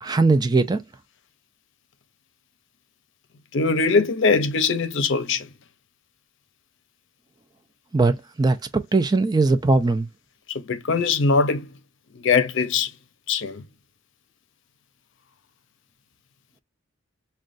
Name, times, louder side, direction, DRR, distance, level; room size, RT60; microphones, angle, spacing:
voice 1, 0.0-0.8 7.9-10.1, right 3 dB, 20° right, 0.4 m, -20 dB
voice 2, 3.5-5.5 10.5-11.7 12.2-12.9 13.3-13.6, left 4 dB, 60° left, 0.6 m, -21 dB
6.1 x 2.2 x 2.5 m
head